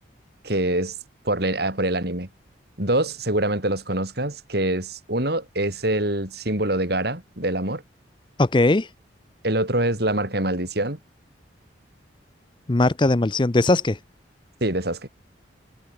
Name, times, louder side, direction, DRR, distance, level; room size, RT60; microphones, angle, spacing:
voice 1, 0.4-1.0 1.2-2.3 2.8-7.8 9.4-11.0 14.6-15.1, right 1 dB, 55° right, 4.5 m, -24 dB
voice 2, 8.4-8.9 12.7-14.0, left 2 dB, 25° left, 0.6 m, -19 dB
head